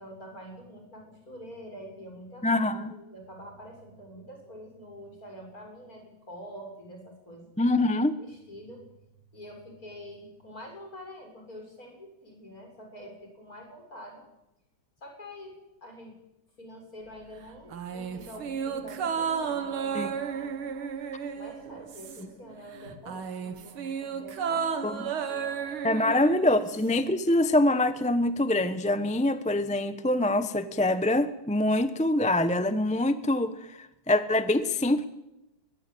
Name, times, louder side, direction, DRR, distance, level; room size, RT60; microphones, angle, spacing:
voice 1, 0.0-7.5 8.2-8.9 9.3-14.2 15.0-16.2 16.6-20.7 21.3-25.5 25.9-26.0, equal, 40° left, 2 dB, 7.3 m, -46 dB
voice 2, 2.4-2.9 7.6-8.1 19.9-20.1 24.8-25.0 25.8-35.1, left 1 dB, 5° left, 11 dB, 0.6 m, -25 dB
sound 1, 17.7-22.5 22.7-27.1 27.4-27.5, right 6 dB, 90° right, 2.5 m, -33 dB
23.5 x 21.0 x 8.7 m, 0.91 s
omnidirectional pair, 2.2 m